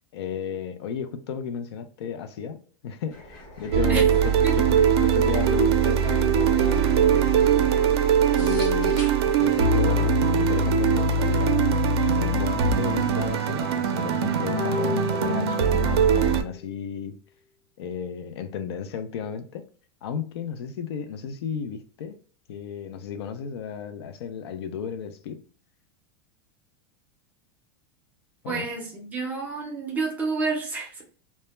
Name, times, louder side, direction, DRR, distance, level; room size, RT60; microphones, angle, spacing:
voice 1, 0.1-4.3 4.7-7.8 8.3-9.0 9.4-17.2 17.8-19.6 20.0-22.2 22.5-25.4 28.4-28.7, left 7 dB, 85° left, 0.4 m, -34 dB
sound 1, 3.1-9.8, left 1 dB, 35° left, 1.0 m, -44 dB
sound 2, 3.7-16.4, right 6 dB, 90° right, 0.4 m, -21 dB
sound 3, 14.6-16.2 16.5-16.6, left 3 dB, 65° left, 0.8 m, -32 dB
voice 2, 28.5-31.0, right 4 dB, 10° right, 0.5 m, -29 dB
2.2 x 2.1 x 2.9 m
supercardioid pair, 165°, 13 cm